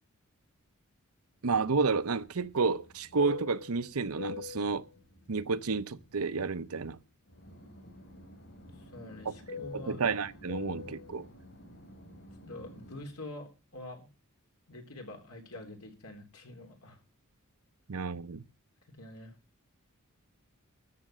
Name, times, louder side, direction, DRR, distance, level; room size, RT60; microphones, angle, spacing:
voice 1, 1.4-4.8 5.3-7.0 9.2-9.3 9.9-11.3 17.9-18.4, right 4 dB, 85° right, 0.8 m, -30 dB
Fixed-wing aircraft airplane, 1.6-6.9 7.3-13.1, left 4 dB, 55° left, 5.3 m, -46 dB
voice 2, 8.7-10.1 12.4-14.1 14.7-17.0 18.9-19.3, left 1 dB, 90° left, 3.6 m, -46 dB
13.5 x 6.5 x 7.7 m
head